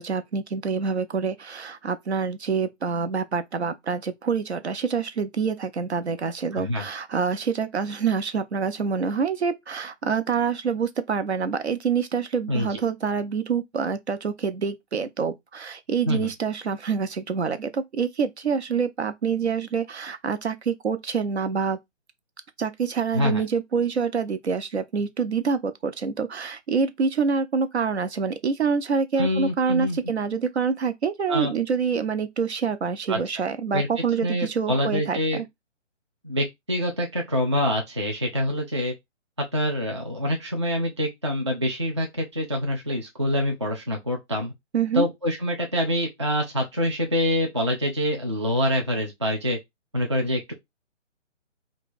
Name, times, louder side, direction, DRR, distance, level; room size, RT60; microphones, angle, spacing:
voice 1, 0.0-21.8 22.6-35.4 44.7-45.1, right 5 dB, 60° right, 0.7 m, -26 dB
voice 2, 6.5-6.9 12.5-12.8 16.1-16.3 23.1-23.4 29.2-30.0 31.3-31.5 33.1-33.2 33.7-33.9 34.2-35.4 36.2-38.9 39.5-44.5 44.9-49.6 49.9-50.5, left 1 dB, 25° right, 0.4 m, -25 dB
2.8 x 2.3 x 4.1 m
figure-of-eight pair, 140°, 37 cm